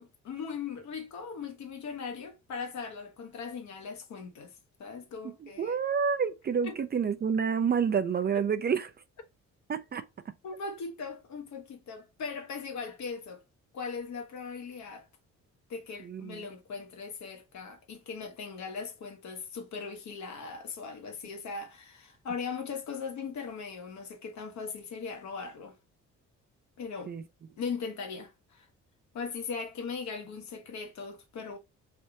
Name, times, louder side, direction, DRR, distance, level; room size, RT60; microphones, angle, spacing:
voice 1, 0.0-4.5 4.8-5.7 6.6-6.8 8.3-8.4 10.4-13.4 13.7-15.1 15.7-25.8 26.8-27.1 27.6-28.7 29.1-31.6, left 5 dB, 70° left, 1.0 m, -39 dB
voice 2, 5.4-8.9 9.7-10.0 16.0-16.5 27.1-27.2, right 6 dB, 35° right, 0.4 m, -29 dB
3.3 x 2.5 x 2.8 m
cardioid pair, 90°, 30 cm